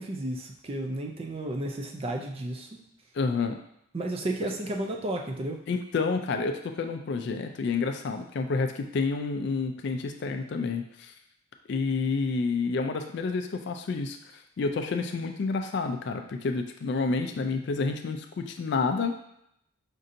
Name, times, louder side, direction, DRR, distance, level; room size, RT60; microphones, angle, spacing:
voice 1, 0.0-2.8 3.9-5.6, right 1 dB, 25° right, 2 dB, 0.3 m, -33 dB
voice 2, 3.1-3.6 5.7-11.1 11.7-14.2 14.6-19.2, left 4 dB, 55° left, 6 dB, 0.3 m, -29 dB
5.1 x 2.7 x 2.5 m, 0.76 s
head